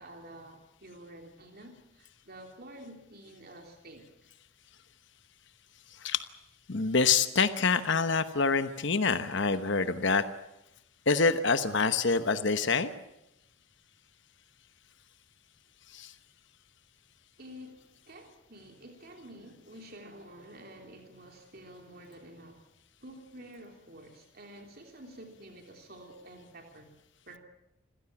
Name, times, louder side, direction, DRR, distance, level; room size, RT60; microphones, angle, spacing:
voice 1, 0.0-4.1 17.4-22.6 23.0-26.9 27.2-27.4, right 1 dB, 45° right, 3 dB, 3.2 m, -49 dB
voice 2, 5.9-6.2 6.7-10.3 11.1-12.9 15.9-16.1, left 4 dB, 55° left, 11 dB, 1.0 m, -26 dB
26.5 x 16.0 x 8.6 m, 0.88 s
head